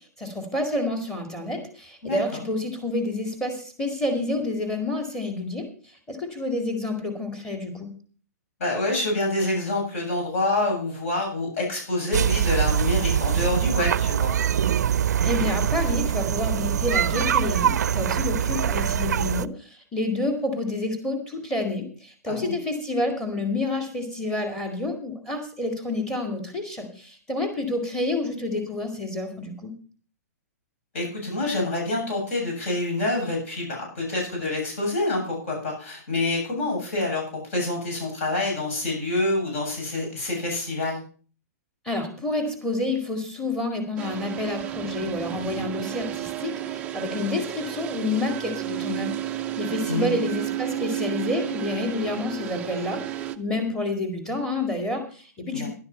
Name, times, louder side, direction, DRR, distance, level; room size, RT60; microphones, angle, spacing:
voice 1, 0.2-5.7 6.1-7.9 15.2-29.7 41.9-55.7, left 2 dB, 5° left, 4 dB, 2.0 m, -29 dB
voice 2, 8.6-14.3 22.3-22.5 30.9-37.2 37.5-41.0 49.9-50.1 55.5-55.7, left 2 dB, 50° left, 0 dB, 7.6 m, -27 dB
sound 1, 12.1-19.5, right 9 dB, 90° right, 0.5 m, -23 dB
sound 2, 44.0-53.4, right 13 dB, 15° right, 0.5 m, -32 dB
12.0 x 11.5 x 4.4 m, 0.41 s
hypercardioid pair, 165°, 9 cm